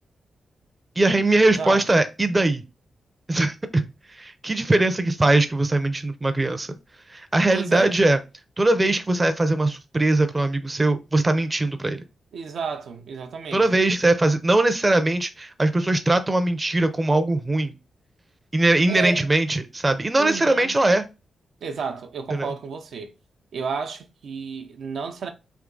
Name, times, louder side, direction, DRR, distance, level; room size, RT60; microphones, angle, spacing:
voice 1, 1.0-2.6 3.3-3.8 4.2-6.7 7.1-8.2 8.6-12.0 13.5-17.7 18.5-21.0 22.4-22.5, right 2 dB, 20° right, 0.5 m, -21 dB
voice 2, 1.5-2.0 7.5-8.0 12.3-13.8 18.9-19.2 20.2-20.8 21.6-23.1 23.5-25.3, right 5 dB, 75° right, 0.6 m, -32 dB
3.5 x 2.8 x 3.8 m
cardioid pair, 85°, 0 cm